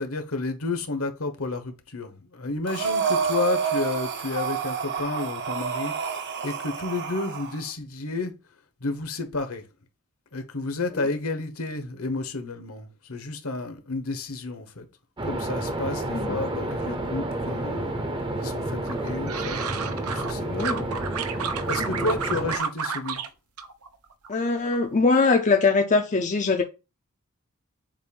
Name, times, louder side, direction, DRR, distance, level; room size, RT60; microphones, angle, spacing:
voice 1, 0.0-6.1 6.4-8.3 8.8-9.6 10.3-14.8 15.2-18.0 18.4-19.6 20.1-20.9 21.3-23.2, left 3 dB, 70° left, 1.2 m, -31 dB
Breathing, 2.7-7.6, right 6 dB, 50° right, 0.9 m, -28 dB
sound 1, 15.2-22.6, right 1 dB, 20° right, 0.7 m, -30 dB
sound 2, 18.9-20.3 20.6-23.3 23.6-24.3 24.7-25.1, right 6 dB, 80° right, 0.8 m, -31 dB
voice 2, 20.5-20.9 21.9-22.0 24.3-26.6, left 4 dB, 35° left, 0.6 m, -22 dB
7.3 x 2.6 x 5.4 m
head